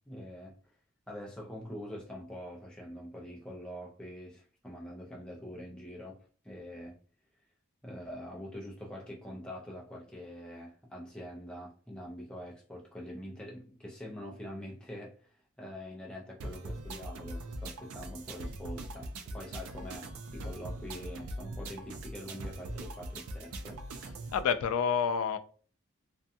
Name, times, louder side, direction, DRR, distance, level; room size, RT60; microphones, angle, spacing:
voice 1, 0.1-0.5 1.1-6.2 6.4-6.9 7.8-15.1 15.6-23.8, equal, 5° left, 0.4 m, -44 dB
sound 1, 16.4-24.4, right 1 dB, 85° right, 0.4 m, -41 dB
voice 2, 24.3-25.4, left 7 dB, 85° left, 0.3 m, -28 dB
2.5 x 2.2 x 2.7 m
head